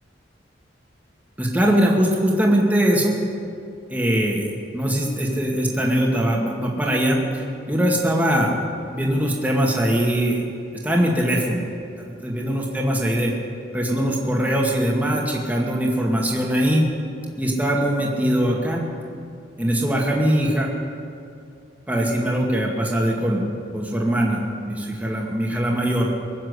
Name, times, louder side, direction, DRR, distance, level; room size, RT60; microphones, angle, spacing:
voice 1, 1.4-3.1 3.9-8.5 8.9-10.4 10.8-11.6 12.0-13.3 13.7-16.9 17.4-18.9 19.6-20.7 21.9-26.1, equal, 10° right, -2 dB, 2.1 m, -21 dB
23.0 x 7.6 x 8.2 m, 2.5 s
head